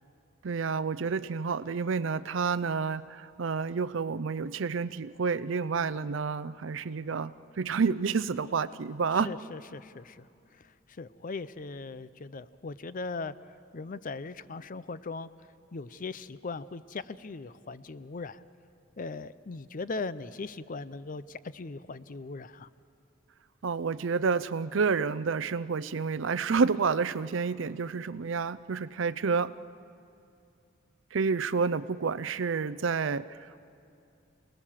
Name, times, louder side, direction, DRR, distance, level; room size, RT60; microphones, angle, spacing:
voice 1, 0.4-9.3 23.6-29.5 31.1-33.6, right 5 dB, 65° right, 15 dB, 0.5 m, -29 dB
voice 2, 9.2-10.3 10.5-15.3 15.7-18.4 19.0-22.7, left 3 dB, 40° left, 16 dB, 0.5 m, -39 dB
28.5 x 19.0 x 7.4 m, 2.5 s
head